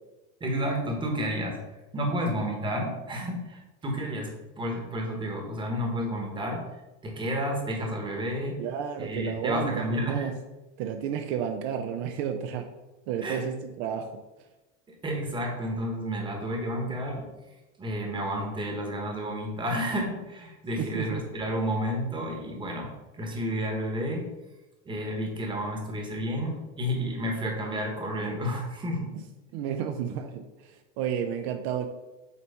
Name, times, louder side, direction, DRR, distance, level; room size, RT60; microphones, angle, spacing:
voice 1, 0.4-1.6 1.9-6.6 7.0-8.6 9.0-10.3 13.2-13.4 14.9-17.3 17.8-22.9 23.2-24.3 24.8-29.1, equal, 15° right, 1 dB, 1.2 m, -31 dB
voice 2, 8.6-10.4 10.8-12.7 13.1-14.1 20.8-21.3 29.5-31.9, right 8 dB, 60° right, 6 dB, 0.7 m, -32 dB
8.2 x 3.0 x 5.5 m, 1.1 s
cardioid pair, 165°, 37 cm